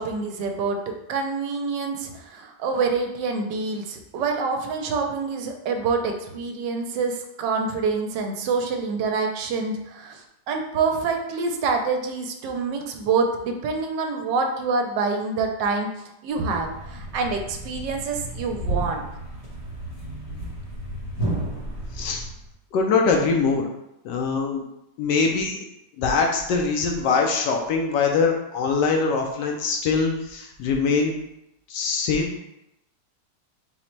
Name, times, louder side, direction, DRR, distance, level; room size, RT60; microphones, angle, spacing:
voice 1, 0.0-10.2 10.5-15.9 16.2-19.0, right 4 dB, 80° right, 3 dB, 1.2 m, -26 dB
Thump thud, 16.3-22.5, right 1 dB, 45° left, 0.5 m, -34 dB
voice 2, 22.7-23.7 24.0-24.6 25.0-25.6 26.0-31.1 31.7-32.3, left 4 dB, 80° left, 1 dB, 1.2 m, -23 dB
4.0 x 2.1 x 4.4 m, 0.84 s
omnidirectional pair, 1.9 m